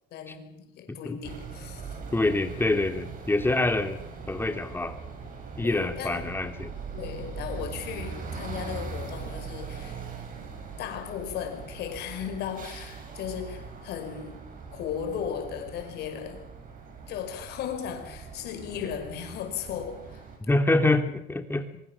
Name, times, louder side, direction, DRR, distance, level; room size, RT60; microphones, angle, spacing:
voice 1, 0.1-2.0 5.6-6.4 6.9-10.0 10.8-14.4 14.7-16.5 17.1-20.3, left 8 dB, 75° left, 6 dB, 5.3 m, -36 dB
voice 2, 0.9-1.2 2.1-4.0 4.3-5.0 5.6-6.7 20.4-21.7, left 2 dB, 15° left, 7 dB, 3.2 m, -26 dB
sound 1, 1.2-20.4, right 5 dB, 55° right, 8.0 m, -41 dB
24.0 x 22.5 x 7.4 m, 0.81 s
cardioid pair, 110°, 17 cm